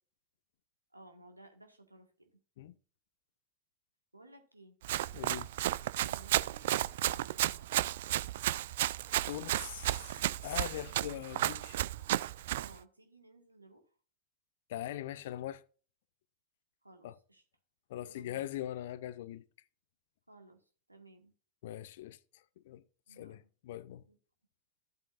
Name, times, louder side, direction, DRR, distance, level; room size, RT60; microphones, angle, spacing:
voice 1, 0.9-2.3 4.1-4.8 6.0-7.7 10.7-11.4 12.6-13.8 16.8-17.4 18.0-18.5 20.3-21.3 23.1-23.5 24.1-24.2, right 2 dB, 85° right, 1.7 m, -58 dB
Run, 4.8-12.7, right 14 dB, 55° right, 0.3 m, -33 dB
voice 2, 5.1-5.5 9.3-11.8 14.7-15.6 17.0-17.2 17.9-19.4 21.6-22.2 22.6-22.8 23.1-24.0, left 13 dB, 55° left, 0.5 m, -41 dB
14.0 x 7.9 x 2.5 m
figure-of-eight pair, 90°, 0 cm